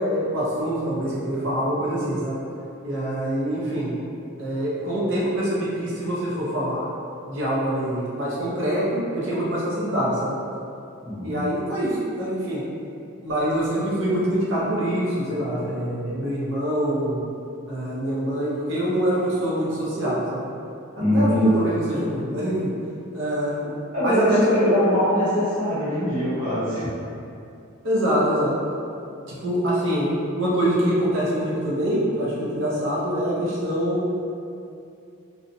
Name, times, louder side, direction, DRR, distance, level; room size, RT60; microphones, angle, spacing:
voice 1, 0.0-2.4 2.8-3.9 4.4-6.9 7.3-10.3 11.2-12.6 13.2-17.2 17.7-20.4 21.1-22.7 23.1-23.6 24.0-24.7 27.8-28.5 29.3-34.0, equal, 55° right, -7 dB, 0.5 m, -25 dB
voice 2, 11.0-11.4 21.0-21.5 23.6-26.9, equal, 35° right, -12 dB, 0.9 m, -22 dB
2.6 x 2.0 x 2.6 m, 2.6 s
head